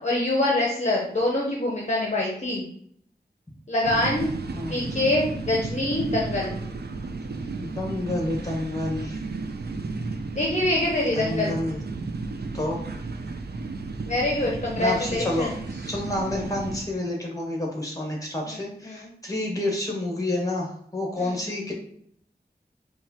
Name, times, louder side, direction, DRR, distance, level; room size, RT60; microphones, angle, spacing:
voice 1, 0.0-2.7 3.7-4.3 4.7-6.6 10.3-11.6 14.1-15.6 18.4-19.1 21.2-21.4, left 1 dB, 45° left, -3 dB, 0.7 m, -25 dB
sound 1, 3.8-16.8, right 3 dB, 70° right, 0.4 m, -33 dB
voice 2, 7.6-9.2 11.1-11.8 12.5-12.8 14.8-15.5 15.9-21.7, left 1 dB, 20° left, -1 dB, 1.1 m, -29 dB
4.6 x 2.3 x 2.8 m, 0.64 s
wide cardioid pair, 60°, 17 cm